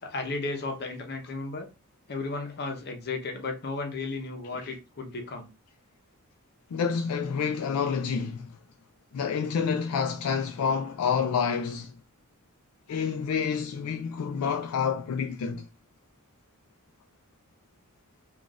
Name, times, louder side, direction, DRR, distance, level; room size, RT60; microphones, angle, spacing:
voice 1, 0.0-1.7 2.1-5.5, left 3 dB, 50° left, 0.8 m, -34 dB
voice 2, 6.7-8.6 9.1-11.9 12.9-15.7, left 6 dB, 80° left, 0.3 m, -28 dB
3.9 x 2.5 x 2.4 m
head